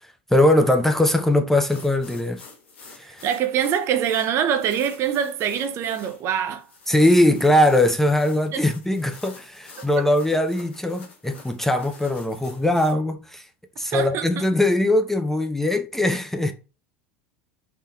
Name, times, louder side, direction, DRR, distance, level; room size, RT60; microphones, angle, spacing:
voice 1, 0.0-2.4 2.9-3.2 6.9-13.5 13.8-16.5, left 1 dB, 5° left, 0.4 m, -21 dB
sound 1, 1.6-12.9, left 4 dB, 80° left, 1.1 m, -47 dB
voice 2, 3.2-6.7 8.5-8.7 13.9-14.5, right 9 dB, 45° right, 0.5 m, -24 dB
3.6 x 2.6 x 2.2 m
hypercardioid pair, 80°, 6 cm